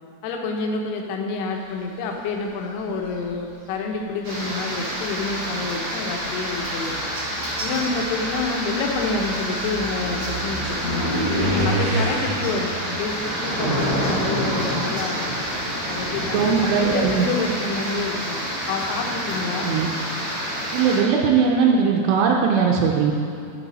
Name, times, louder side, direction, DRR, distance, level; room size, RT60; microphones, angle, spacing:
voice 1, 0.2-7.0 7.6-11.3 11.6-15.3 15.8-19.7, left 3 dB, 80° left, 1 dB, 2.8 m, -28 dB
sound 1, 2.8-3.3 4.3-4.4 5.0-14.9 15.2-17.8, equal, 70° right, 3.3 m, -30 dB
sound 2, 4.2-21.0, equal, 40° right, 1.9 m, -28 dB
voice 2, 16.3-17.3 19.6-19.9 20.7-23.1, right 6 dB, 90° right, -1 dB, 2.8 m, -19 dB
12.5 x 4.5 x 4.1 m, 2.5 s
omnidirectional pair, 4.7 m